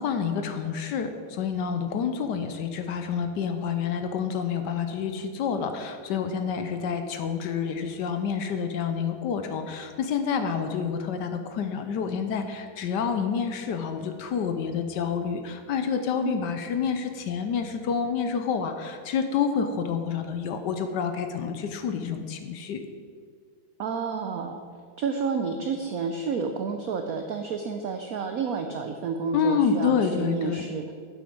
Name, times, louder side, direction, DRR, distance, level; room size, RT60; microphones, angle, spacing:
voice 1, 0.0-22.8 29.3-30.6, left 6 dB, 70° left, 7 dB, 1.1 m, -28 dB
voice 2, 23.8-24.6 25.0-30.9, right 5 dB, 90° right, 6 dB, 0.7 m, -30 dB
8.4 x 7.8 x 5.2 m, 2.1 s
omnidirectional pair, 2.2 m